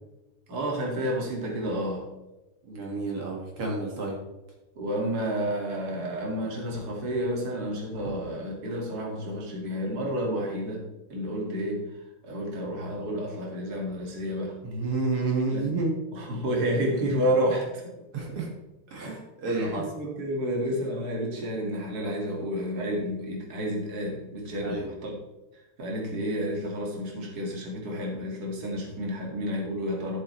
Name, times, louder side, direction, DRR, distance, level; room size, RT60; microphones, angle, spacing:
voice 1, 0.5-2.1 4.8-10.8 11.1-14.5 15.5-15.6 16.1-17.8 19.0-19.1 19.5-25.2 25.8-30.2, equal, 45° right, -1 dB, 2.6 m, -30 dB
voice 2, 2.6-4.2 8.0-8.2 14.6-15.9 18.1-18.5 18.9-19.9 24.6-24.9, right 3 dB, 80° right, -1 dB, 2.9 m, -30 dB
12.5 x 7.5 x 3.2 m, 1.0 s
omnidirectional pair, 2.4 m